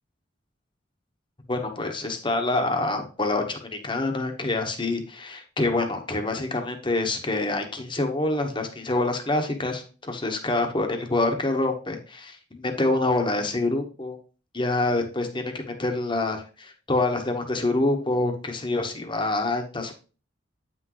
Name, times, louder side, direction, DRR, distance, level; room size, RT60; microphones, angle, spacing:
voice 1, 1.5-14.2 14.5-19.9, left 2 dB, 25° left, 5 dB, 1.2 m, -26 dB
8.9 x 6.1 x 3.1 m, 0.36 s
head